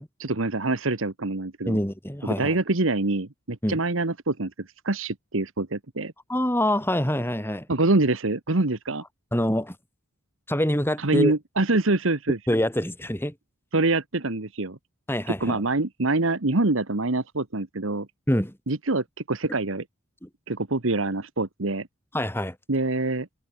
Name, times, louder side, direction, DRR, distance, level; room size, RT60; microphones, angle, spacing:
voice 1, 0.2-1.8 2.4-6.1 7.7-9.0 11.0-12.4 13.7-14.8 15.3-18.1 18.7-19.8 20.5-21.9 22.7-23.3, right 2 dB, 70° right, 1.4 m, -25 dB
voice 2, 1.7-2.6 3.6-3.8 6.3-7.7 9.3-9.8 10.5-11.3 12.5-13.3 15.1-15.6 18.3-18.5 20.2-20.3 22.1-22.6, left 1 dB, 10° left, 7.3 m, -25 dB
head